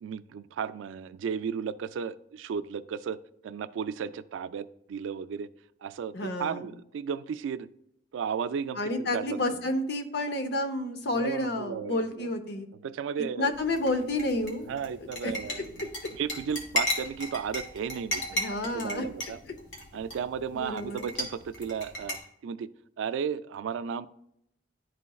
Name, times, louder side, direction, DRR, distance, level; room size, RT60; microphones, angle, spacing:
voice 1, 0.0-3.2 3.4-5.5 5.8-7.7 8.1-9.4 11.1-12.3 12.8-13.5 14.7-19.4 19.9-22.2 22.4-22.7 23.0-24.1, right 7 dB, 85° right, 14 dB, 0.3 m, -34 dB
voice 2, 6.1-6.7 8.8-12.7 13.4-14.7 15.2-15.3 18.3-19.1 20.5-21.1, left 1 dB, 60° left, 7 dB, 0.7 m, -30 dB
sound 1, 13.5-22.2, left 1 dB, 75° left, 1.6 m, -36 dB
11.0 x 4.1 x 2.3 m, 0.77 s
head